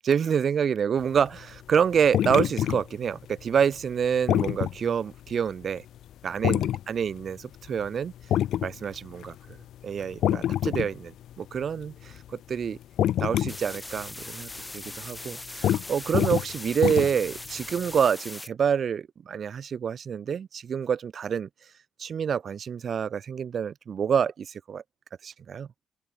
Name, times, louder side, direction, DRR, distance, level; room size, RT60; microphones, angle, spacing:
voice 1, 0.0-5.8 6.2-8.1 8.6-9.6 9.8-12.8 13.2-21.5 22.0-24.8 25.2-25.7, right 7 dB, 50° right, 0.5 m, -27 dB
sound 1, 1.2-4.8 5.3-5.4 6.4-6.8 7.3-7.4 7.6-7.9 8.2-9.6 10.0-11.0 11.3-12.3 12.6-13.8 14.1-14.2 14.6-14.7 15.2-15.3 15.6-15.8 16.1-17.4 18.0-18.1, left 11 dB, 75° left, 0.6 m, -26 dB
sound 2, 13.5-18.5, left 2 dB, 15° left, 2.3 m, -40 dB
open air
cardioid pair, 90°, 0 cm